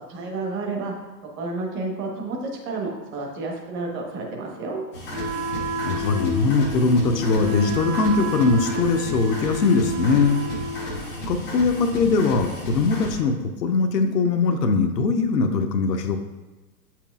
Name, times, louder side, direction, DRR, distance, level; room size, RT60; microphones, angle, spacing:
voice 1, 0.1-0.9 1.4-4.8, right 3 dB, 25° right, 0 dB, 1.2 m, -30 dB
sound 1, 4.9-13.1, equal, 5° left, 0.4 m, -33 dB
Wind instrument woodwind instrument, 5.1-11.0, left 1 dB, 55° right, 2.2 m, -30 dB
voice 2, 5.8-10.4 10.8-11.0 11.3-13.3 13.6-16.2, left 4 dB, 70° left, 5 dB, 0.8 m, -21 dB
8.2 x 5.9 x 2.4 m, 1.2 s
figure-of-eight pair, 115°, 50 cm